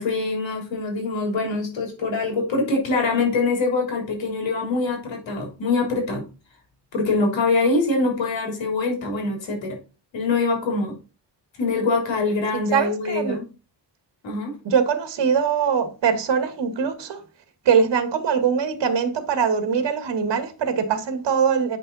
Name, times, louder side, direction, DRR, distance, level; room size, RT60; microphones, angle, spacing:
voice 1, 0.0-6.3 6.9-9.8 10.1-11.0 11.6-13.5 14.2-14.6, left 3 dB, 80° left, 3.7 m, -24 dB
voice 2, 12.7-13.4 14.6-17.2 17.7-21.8, right 6 dB, 65° right, 1.8 m, -22 dB
9.3 x 5.6 x 4.1 m
wide cardioid pair, 160°, 44 cm